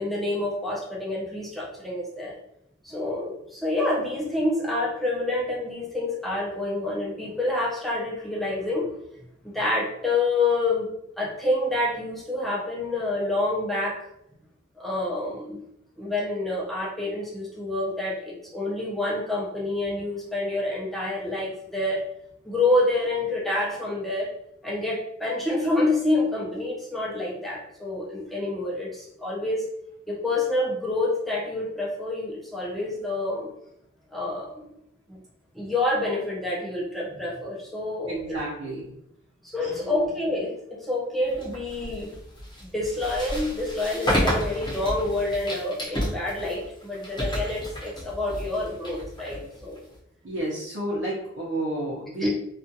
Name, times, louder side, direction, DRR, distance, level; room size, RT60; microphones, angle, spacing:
voice 1, 0.0-2.3 2.8-8.9 9.4-10.9 11.2-14.0 14.8-15.6 16.0-22.0 22.4-24.3 24.6-29.6 30.1-33.5 34.1-34.5 35.1-35.2 35.5-38.4 39.4-42.1 42.6-49.8 52.2-52.3, left 2 dB, ahead, -5 dB, 0.6 m, -27 dB
voice 2, 38.1-38.9 39.8-40.1 50.2-52.3, right 1 dB, 70° right, -7 dB, 0.8 m, -31 dB
sound 1, 41.3-50.0, equal, 25° left, 1.0 m, -31 dB
2.4 x 2.4 x 2.7 m, 0.79 s
head